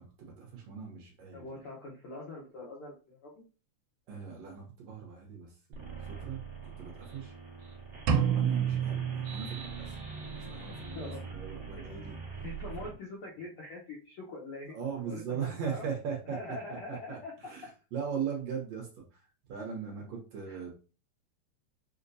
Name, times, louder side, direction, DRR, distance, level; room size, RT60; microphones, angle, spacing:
voice 1, 0.0-1.4 4.1-7.3 8.3-12.2 14.7-16.6 16.9-19.2 19.5-20.7, right 7 dB, 65° right, 0 dB, 1.8 m, -39 dB
voice 2, 1.3-3.4 10.9-11.2 12.4-14.8 15.0-15.8 16.2-17.3 20.5-20.6, left 3 dB, 75° left, -5 dB, 1.3 m, -43 dB
sound 1, 5.7-12.9, right 5 dB, 50° right, 1.0 m, -43 dB
sound 2, 8.1-10.0, right 8 dB, 85° right, 2.1 m, -29 dB
6.0 x 2.1 x 2.6 m, 0.34 s
omnidirectional pair, 3.6 m